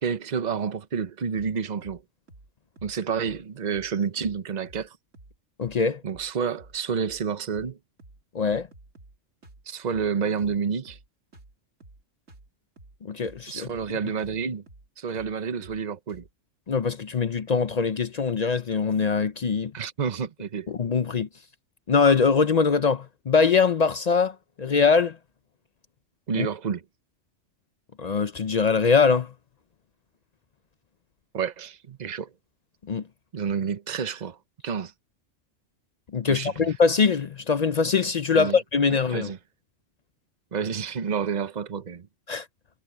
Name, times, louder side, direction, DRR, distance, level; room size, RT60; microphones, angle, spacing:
voice 1, 0.0-2.0 2.8-5.0 6.0-7.8 9.7-11.0 13.5-14.6 15.0-16.3 19.7-20.7 26.3-26.8 31.3-32.3 33.3-34.4 34.6-34.9 36.3-36.7 38.3-38.6 39.1-39.4 40.5-42.1, right 6 dB, 40° right, 0.9 m, -29 dB
sound 1, 1.3-1.5 1.8-2.0 2.3-2.5 2.8-3.0 3.2-3.4 3.7-3.9 4.2-4.4 4.7-4.9 5.1-5.4 5.6-5.8 6.1-6.3 6.6-6.8 7.0-7.3 7.5-7.7 8.0-8.2 8.5-9.2 9.4-9.6 9.9-10.1 10.4-10.6 10.8-11.1 11.3-11.5 11.8-12.0 12.3-12.5 12.8-13.0 13.2-13.4 13.7-13.9 14.2-14.4 14.7-14.9 15.1-15.3 15.6-15.8 16.1-16.3, right 2 dB, 75° right, 3.3 m, -51 dB
voice 2, 5.6-6.0 8.3-8.7 13.0-13.7 16.7-19.7 20.7-21.3 21.9-25.2 26.4-26.5 28.0-29.3 32.9-33.0 36.1-39.3 42.3-42.5, left 5 dB, 50° left, 0.5 m, -22 dB
omnidirectional pair, 1.3 m